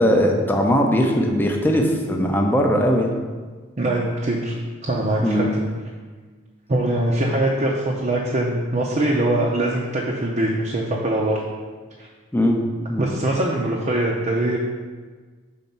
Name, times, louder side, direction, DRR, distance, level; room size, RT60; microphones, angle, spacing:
voice 1, 0.0-3.1 5.2-5.5 12.3-12.6 12.9-13.0, equal, 10° left, 1 dB, 0.6 m, -19 dB
voice 2, 3.8-4.5 4.8-5.7 6.7-11.4 12.0-12.1 13.0-14.6, right 1 dB, 35° right, -3 dB, 0.6 m, -22 dB
5.8 x 4.1 x 5.4 m, 1.4 s
head